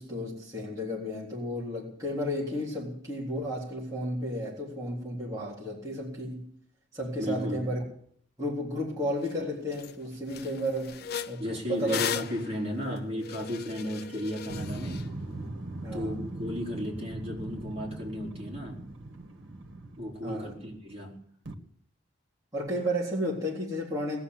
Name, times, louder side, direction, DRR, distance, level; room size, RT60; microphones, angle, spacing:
voice 1, 0.0-6.5 6.9-7.8 8.4-11.4 11.7-12.0 12.9-13.0 15.8-16.2 20.2-20.5 22.5-24.2, equal, 15° right, 3.7 m, -33 dB
voice 2, 7.2-7.6 11.4-15.1 15.9-18.8 20.0-21.2, equal, 35° right, 4.1 m, -34 dB
sound 1, 9.3-9.4 9.7-9.9 10.3-15.0, left 8 dB, 55° left, 0.6 m, -37 dB
sound 2, 14.5-20.9 21.5-21.6, right 2 dB, 85° right, 1.8 m, -40 dB
20.0 x 7.3 x 9.7 m
head